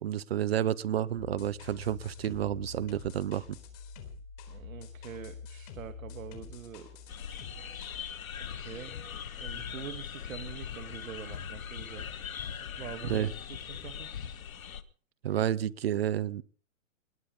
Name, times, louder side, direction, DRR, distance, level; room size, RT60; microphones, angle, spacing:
voice 1, 0.0-3.6 13.1-13.3 15.2-16.4, right 11 dB, 50° right, 20 dB, 0.7 m, -30 dB
sound 1, 1.2-8.0, left 5 dB, 30° left, 4.1 m, -46 dB
voice 2, 4.5-6.9 8.4-9.0 9.4-12.1 12.8-14.1, right 8 dB, 80° right, 9 dB, 2.1 m, -44 dB
sound 2, 7.1-14.8, left 8 dB, 85° left, 2.0 m, -42 dB
sound 3, 8.3-14.4, left 7 dB, 60° left, 3.1 m, -44 dB
28.5 x 20.5 x 2.2 m, 0.44 s
hypercardioid pair, 165°, 40 cm